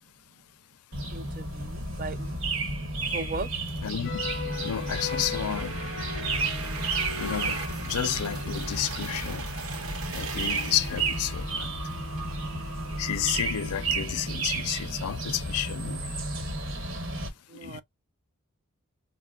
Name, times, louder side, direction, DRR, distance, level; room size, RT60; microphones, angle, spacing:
sound 1, 0.9-17.3, right 2 dB, 55° right, 1.1 m, -32 dB
voice 1, 1.1-2.4 3.1-3.5 17.5-17.8, right 3 dB, 40° right, 0.4 m, -37 dB
sound 2, 3.7-13.4, right 5 dB, 80° right, 0.9 m, -41 dB
sound 3, 4.0-14.4, left 5 dB, 55° left, 0.7 m, -41 dB
voice 2, 4.6-5.7 7.2-9.4 10.1-11.8 13.0-16.0 17.6-17.8, left 10 dB, 90° left, 0.4 m, -31 dB
4.1 x 2.1 x 2.3 m
head